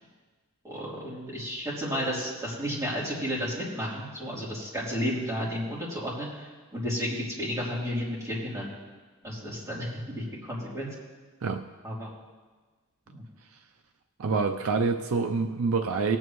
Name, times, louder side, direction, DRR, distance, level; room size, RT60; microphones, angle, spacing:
voice 1, 0.6-8.7 9.2-10.9 11.8-12.1 13.1-13.2, equal, 15° right, -8 dB, 3.4 m, -32 dB
voice 2, 14.2-16.2, right 4 dB, 75° right, 6 dB, 0.5 m, -26 dB
19.0 x 8.9 x 3.1 m, 1.3 s
head